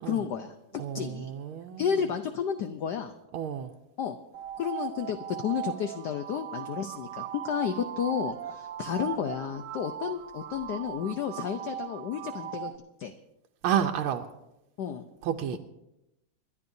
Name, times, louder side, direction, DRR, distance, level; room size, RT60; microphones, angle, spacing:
voice 1, 0.0-1.3 1.8-3.1 4.0-4.2 4.6-12.7 13.0-13.1 14.8-15.1, left 8 dB, 65° left, 7 dB, 1.1 m, -32 dB
voice 2, 0.8-2.0 3.3-3.7 13.6-14.3 15.2-15.6, right 9 dB, 80° right, 3 dB, 1.5 m, -30 dB
sound 1, 4.3-12.8, right 10 dB, 65° right, 1.4 m, -38 dB
30.0 x 11.0 x 2.7 m, 0.91 s
omnidirectional pair, 2.3 m